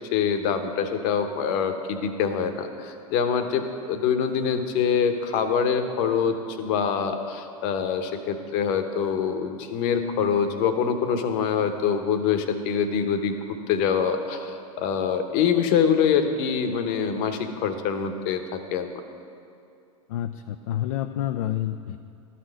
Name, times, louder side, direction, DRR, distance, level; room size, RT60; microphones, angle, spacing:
voice 1, 0.1-13.3 13.7-18.9, left 7 dB, 50° left, 7 dB, 0.9 m, -25 dB
voice 2, 20.1-22.0, left 12 dB, 70° left, 8 dB, 0.4 m, -28 dB
12.5 x 4.3 x 7.6 m, 2.5 s
hypercardioid pair, 95°, 19 cm